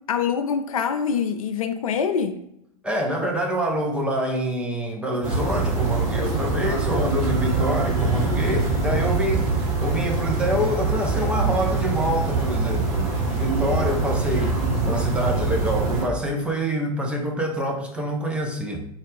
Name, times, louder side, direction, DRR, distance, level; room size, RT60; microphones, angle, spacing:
voice 1, 0.1-2.4, left 6 dB, 65° left, 0.4 m, -24 dB
voice 2, 2.8-14.6 14.8-18.9, equal, 5° right, 0.5 m, -26 dB
sound 1, 5.2-16.1, right 3 dB, 55° right, 1.1 m, -24 dB
3.8 x 2.3 x 3.5 m
figure-of-eight pair, 90°, 19 cm